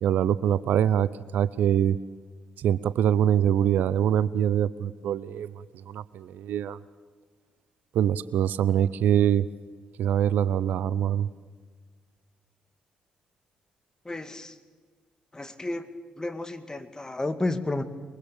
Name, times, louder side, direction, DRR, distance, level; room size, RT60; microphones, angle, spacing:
voice 1, 0.0-2.0 2.6-6.8 7.9-9.5 10.0-11.3, right 10 dB, 65° right, 18 dB, 0.6 m, -24 dB
voice 2, 14.0-14.6 15.3-15.9 16.2-17.8, left 2 dB, 20° left, 9 dB, 2.3 m, -31 dB
23.0 x 23.0 x 7.2 m, 1.5 s
hypercardioid pair, 40°, 3 cm